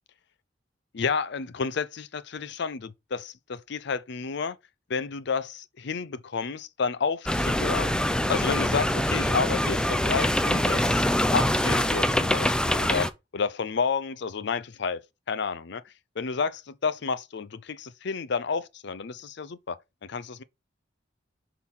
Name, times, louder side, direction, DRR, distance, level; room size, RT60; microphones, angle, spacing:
voice 1, 0.9-4.6 4.9-8.0 8.3-11.1 11.3-15.8 16.2-20.4, left 5 dB, 65° left, 0.6 m, -31 dB
sound 1, 7.3-13.1, left 1 dB, 5° left, 0.5 m, -24 dB
6.3 x 4.0 x 5.4 m
head